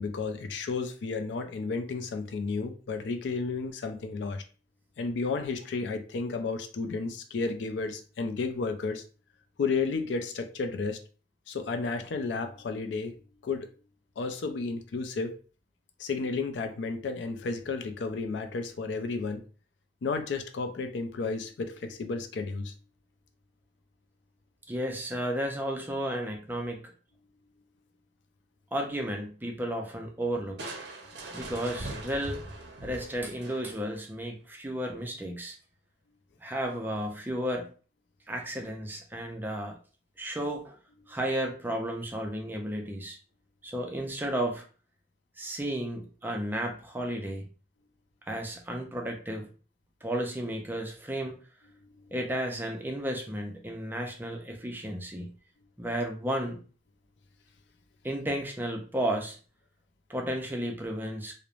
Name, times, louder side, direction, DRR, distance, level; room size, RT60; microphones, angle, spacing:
voice 1, 0.0-4.4 5.0-9.0 9.6-11.0 11.5-13.1 13.4-13.7 14.2-15.3 16.0-19.4 20.0-22.7 52.0-52.1, left 4 dB, 70° left, 0.4 m, -32 dB
voice 2, 24.7-26.8 28.7-30.7 31.3-32.4 32.8-35.6 36.4-37.7 38.3-39.8 40.2-40.8 41.1-43.2 43.6-44.6 45.4-47.4 48.3-49.5 50.0-51.4 52.1-55.3 55.8-56.6 58.0-59.4 60.1-61.3, right 1 dB, 10° right, 0.4 m, -33 dB
Crushing, 30.6-34.0, right 2 dB, 60° right, 0.5 m, -41 dB
3.0 x 2.0 x 2.4 m
head